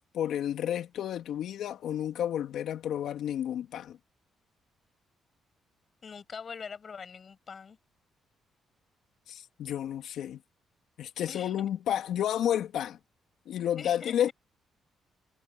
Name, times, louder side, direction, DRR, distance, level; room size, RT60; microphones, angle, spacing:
voice 1, 0.0-4.0 9.3-10.4 11.0-13.0 13.5-14.3, left 10 dB, 75° left, 2.8 m, -31 dB
voice 2, 6.0-7.8 11.3-11.7 13.8-14.3, left 6 dB, 45° left, 7.5 m, -43 dB
cardioid pair, 90°, 0 cm